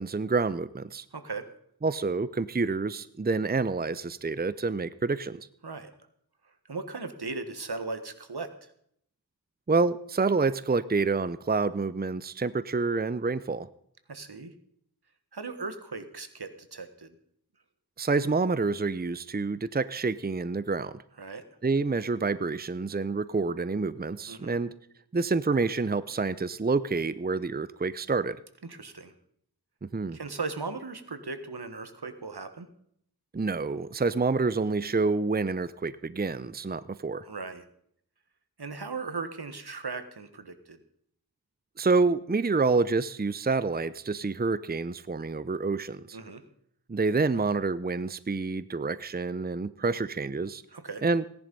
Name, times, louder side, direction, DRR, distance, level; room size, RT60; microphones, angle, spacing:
voice 1, 0.0-1.0 1.8-5.5 9.7-13.7 18.0-21.0 21.6-24.7 25.1-28.4 29.8-30.2 33.3-37.2 41.8-46.2 46.9-50.6 51.0-51.2, right 4 dB, 25° right, 16 dB, 0.6 m, -28 dB
voice 2, 1.1-1.5 5.6-5.9 6.4-8.7 14.1-14.5 15.3-17.2 21.2-21.4 24.3-24.6 28.6-29.1 30.1-32.7 37.2-37.6 38.6-40.8 46.1-46.4 50.7-51.0, right 4 dB, 80° right, 10 dB, 1.5 m, -38 dB
17.0 x 10.5 x 5.4 m, 0.68 s
wide cardioid pair, 45°, 39 cm